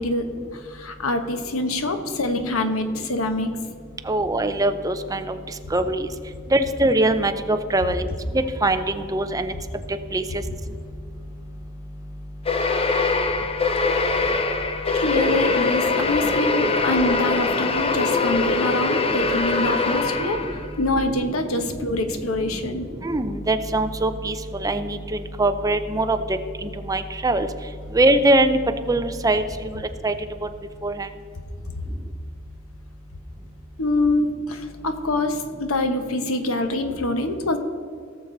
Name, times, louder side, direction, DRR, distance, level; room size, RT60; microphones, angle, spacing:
voice 1, 0.0-3.5 14.9-20.4 20.8-22.9 33.8-37.6, left 2 dB, 80° left, 7 dB, 1.1 m, -25 dB
voice 2, 4.1-5.2 5.7-6.1 6.5-8.1 8.6-8.8 9.1-9.5 10.1-10.2 23.0-24.3 24.6-25.0 25.4-26.2 26.6-27.5 27.9-28.6 28.9-29.4 30.0-30.1 30.8-31.1, right 2 dB, 15° right, 8 dB, 0.6 m, -21 dB
sound 1, 12.5-20.7, left 3 dB, 25° left, 0.6 m, -22 dB
17.5 x 6.8 x 4.0 m, 2.3 s
head